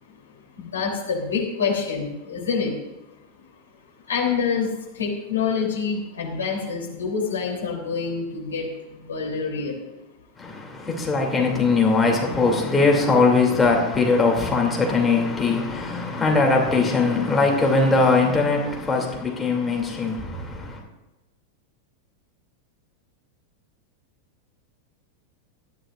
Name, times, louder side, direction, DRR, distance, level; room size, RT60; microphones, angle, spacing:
voice 1, 0.0-10.0, left 5 dB, 70° left, 3.2 m, -27 dB
voice 2, 10.4-20.8, left 3 dB, 10° left, 2.7 m, -21 dB
19.0 x 13.0 x 2.5 m
figure-of-eight pair, 90°, 0 cm